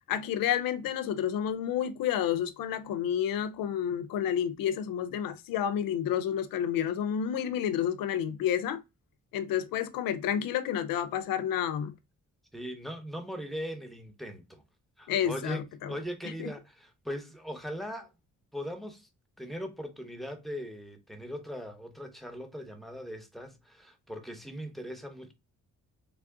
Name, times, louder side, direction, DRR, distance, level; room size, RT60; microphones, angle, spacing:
voice 1, 0.1-8.8 9.3-11.9 15.1-15.9 16.4-16.5, left 9 dB, 90° left, 0.5 m, -30 dB
voice 2, 12.5-14.6 15.0-18.1 18.5-19.1 19.4-25.3, equal, ahead, 0.9 m, -40 dB
3.4 x 2.4 x 3.6 m
cardioid pair, 80°, 34 cm